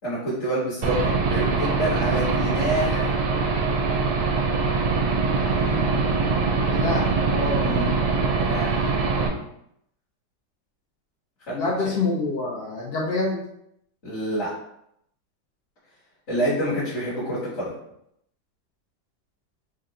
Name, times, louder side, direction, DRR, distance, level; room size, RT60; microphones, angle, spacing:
voice 1, 0.0-3.2 7.5-8.1 8.4-8.8 11.5-11.6 11.8-11.9 14.0-14.5 16.3-17.7, right 1 dB, 45° left, -10 dB, 1.4 m, -27 dB
Aircraft / Engine, 0.8-9.3, right 4 dB, 90° right, 1.3 m, -23 dB
voice 2, 5.4-6.2 6.7-7.7 11.5-13.4, left 3 dB, 80° left, -2 dB, 0.5 m, -27 dB
3.9 x 2.2 x 3.8 m, 0.76 s
omnidirectional pair, 1.8 m